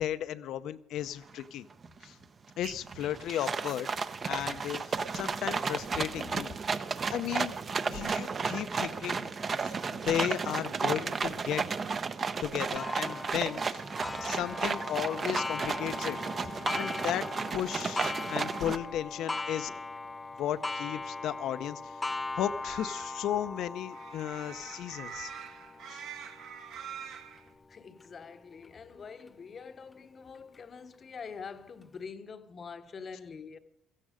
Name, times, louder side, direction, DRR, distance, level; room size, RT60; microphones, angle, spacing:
voice 1, 0.0-1.7 2.0-2.2 2.6-3.9 4.2-6.5 7.1-7.6 7.9-9.3 9.6-11.6 12.4-13.8 14.2-16.2 16.7-17.3 17.5-19.7 20.4-22.0 22.4-25.3 25.9-26.0, left 11 dB, 65° left, 0.7 m, -34 dB
sound 1, 1.4-1.5 1.8-2.2 2.6-18.8, right 5 dB, 30° right, 0.7 m, -33 dB
Clock, 12.7-28.1 28.6-28.7 29.3-29.4 30.3-30.4, left 3 dB, 15° left, 0.5 m, -39 dB
sound 2, 22.4-27.5, right 8 dB, 70° right, 1.8 m, -45 dB
voice 2, 27.7-33.6, left 5 dB, 30° left, 0.9 m, -45 dB
15.5 x 15.5 x 5.0 m
cardioid pair, 150°, 0 cm